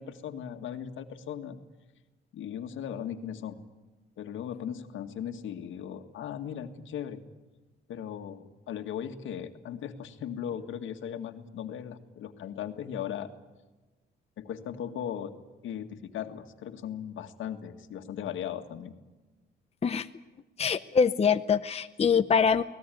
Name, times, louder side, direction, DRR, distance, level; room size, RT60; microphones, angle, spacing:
voice 1, 0.0-1.6 2.3-3.6 4.2-7.2 7.9-13.3 14.4-15.3 15.6-19.0, left 9 dB, 80° left, 6 dB, 1.9 m, -38 dB
voice 2, 20.6-22.6, left 6 dB, 30° left, 9 dB, 0.8 m, -24 dB
24.5 x 18.5 x 9.2 m, 1.2 s
cardioid pair, 90°, 20 cm